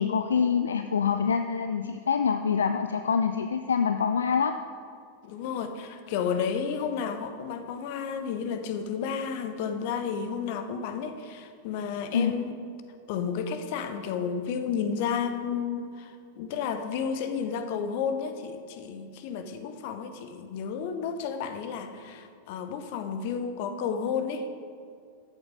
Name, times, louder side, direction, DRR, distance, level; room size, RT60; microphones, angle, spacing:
voice 1, 0.0-4.6 12.1-12.3, left 6 dB, 70° left, 8 dB, 0.4 m, -25 dB
voice 2, 5.2-12.5 13.1-24.5, left 6 dB, 50° left, 9 dB, 0.9 m, -32 dB
13.0 x 8.1 x 5.1 m, 2.3 s
figure-of-eight pair, 90°, 0 cm